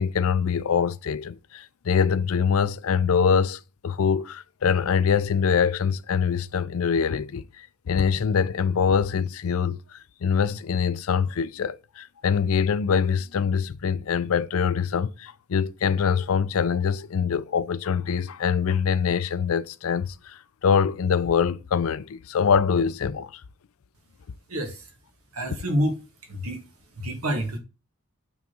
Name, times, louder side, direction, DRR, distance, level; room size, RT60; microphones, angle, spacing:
voice 1, 0.0-23.4, left 6 dB, 75° left, 0.4 m, -24 dB
voice 2, 24.5-24.9 25.3-26.6 27.0-27.6, equal, 80° right, 2.0 m, -28 dB
6.0 x 4.0 x 6.1 m
head